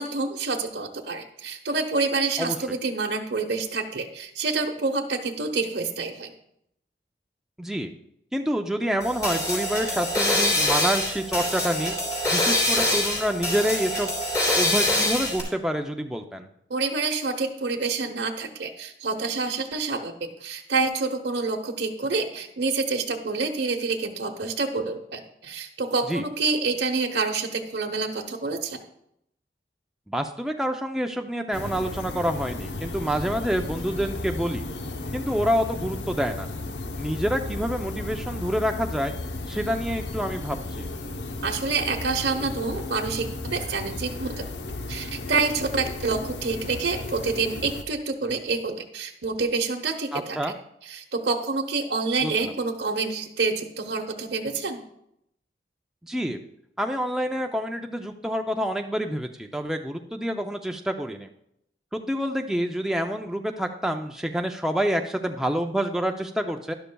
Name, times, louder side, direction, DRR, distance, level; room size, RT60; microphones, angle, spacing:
voice 1, 0.0-6.3 16.7-20.1 20.4-28.8 41.4-44.4 44.9-50.4 50.8-54.8, right 4 dB, 80° right, 2 dB, 0.9 m, -27 dB
voice 2, 7.6-7.9 8.3-12.0 12.3-14.1 14.5-16.5 26.1-26.2 30.1-34.7 35.1-36.5 37.0-39.1 39.5-40.9 50.1-50.5 52.2-52.5 56.0-56.4 56.8-61.3 61.9-66.7, equal, 5° right, 3 dB, 0.4 m, -27 dB
sound 1, 9.0-15.4, left 1 dB, 20° left, 3.0 m, -24 dB
sound 2, 31.5-47.8, left 2 dB, 80° left, 0.8 m, -34 dB
12.0 x 11.5 x 2.3 m, 0.76 s
head